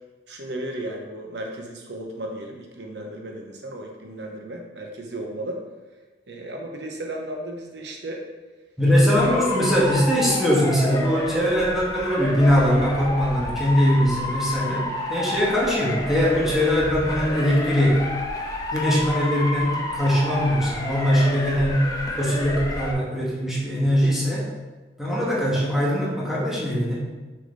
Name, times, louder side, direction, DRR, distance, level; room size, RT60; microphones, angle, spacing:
voice 1, 0.3-5.6 6.3-8.2 9.2-9.4 25.4-25.6, right 1 dB, 70° right, 1 dB, 1.0 m, -34 dB
voice 2, 8.8-18.1 18.7-21.9 22.2-24.5 25.0-27.0, equal, ahead, -7 dB, 1.8 m, -21 dB
Motor vehicle (road) / Siren, 9.1-22.9, left 1 dB, 20° left, 0.9 m, -30 dB
6.7 x 5.8 x 3.9 m, 1.2 s
head